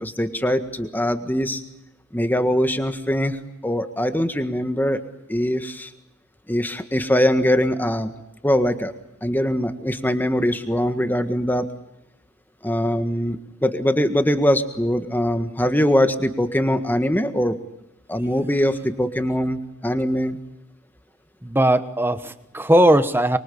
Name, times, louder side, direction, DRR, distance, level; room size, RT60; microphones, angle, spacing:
voice 1, 0.0-1.6 2.1-5.0 5.3-5.9 6.5-8.1 8.4-8.9 9.2-11.7 12.6-17.6 18.1-20.4, equal, 10° left, 8 dB, 1.6 m, -22 dB
voice 2, 21.4-23.4, right 1 dB, 10° right, 11 dB, 1.2 m, -18 dB
24.5 x 24.0 x 8.6 m, 0.87 s
head